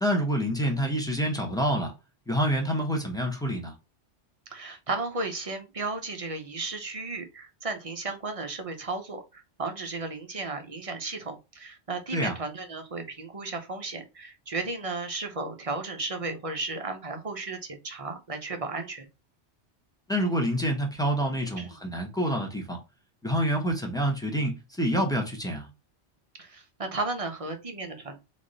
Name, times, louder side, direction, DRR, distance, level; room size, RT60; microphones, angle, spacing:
voice 1, 0.0-1.9 2.3-3.7 12.1-12.3 20.1-22.8 23.2-25.7, equal, 5° left, 0.9 m, -27 dB
voice 2, 4.5-19.1 21.6-21.8 26.4-28.2, right 3 dB, 35° right, 0.7 m, -34 dB
3.6 x 3.0 x 3.9 m
omnidirectional pair, 1.2 m